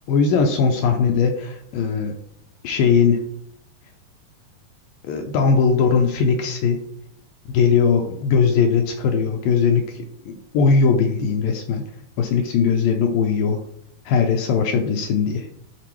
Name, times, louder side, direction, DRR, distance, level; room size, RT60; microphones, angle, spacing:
voice 1, 0.1-2.1 2.6-3.2 5.0-6.8 7.5-11.9 12.2-13.6 14.1-15.5, left 5 dB, 80° left, 4 dB, 2.1 m, -19 dB
11.0 x 4.0 x 3.1 m, 0.71 s
omnidirectional pair, 4.5 m